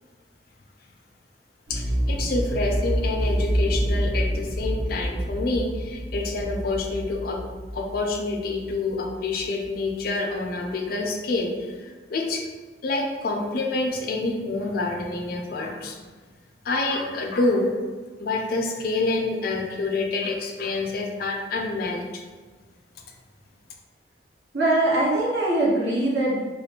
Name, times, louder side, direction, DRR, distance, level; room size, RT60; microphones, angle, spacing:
voice 1, 1.7-7.4 7.7-12.4 12.8-16.0 16.6-17.8 18.2-22.0, left 3 dB, 55° left, 2 dB, 0.4 m, -27 dB
sound 1, 1.7-9.4 9.7-9.8, equal, 55° right, 0.6 m, -27 dB
voice 2, 24.5-26.4, right 1 dB, 85° right, -7 dB, 0.9 m, -22 dB
2.4 x 2.1 x 2.8 m, 1.4 s
head